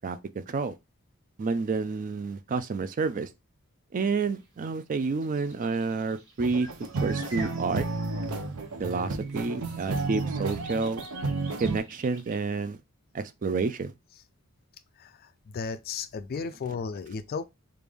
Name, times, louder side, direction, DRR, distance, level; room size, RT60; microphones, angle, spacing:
voice 1, 1.4-3.3 3.9-6.7 7.0-7.8 8.8-11.0 11.6-12.8 13.1-13.9, right 4 dB, 35° right, 0.3 m, -29 dB
sound 1, 4.4-4.5 5.2-9.0 9.3-12.4, right 3 dB, 60° right, 1.2 m, -48 dB
sound 2, 6.4-11.8, right 3 dB, 80° right, 0.7 m, -32 dB
voice 2, 15.0-17.5, left 5 dB, 45° left, 0.3 m, -35 dB
3.3 x 2.5 x 3.4 m
head